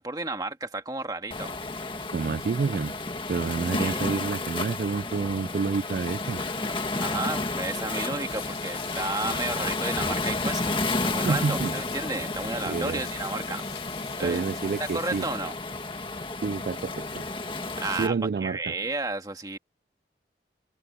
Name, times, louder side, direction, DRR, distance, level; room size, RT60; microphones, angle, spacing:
voice 1, 0.0-1.6 3.8-4.0 6.9-13.7 14.2-14.4 14.8-15.6 17.8-19.6, right 3 dB, 20° right, 2.0 m, -32 dB
Waves surf, 1.3-18.1, left 3 dB, 30° left, 1.8 m, -31 dB
voice 2, 2.1-2.9 3.3-6.4 11.3-11.7 12.7-13.0 14.2-15.3 16.4-17.2 18.0-18.7, right 4 dB, 55° right, 0.3 m, -28 dB
sound 1, 2.5-10.8, left 1 dB, 10° left, 3.1 m, -54 dB
sound 2, 8.3-15.4, left 9 dB, 75° left, 4.8 m, -45 dB
head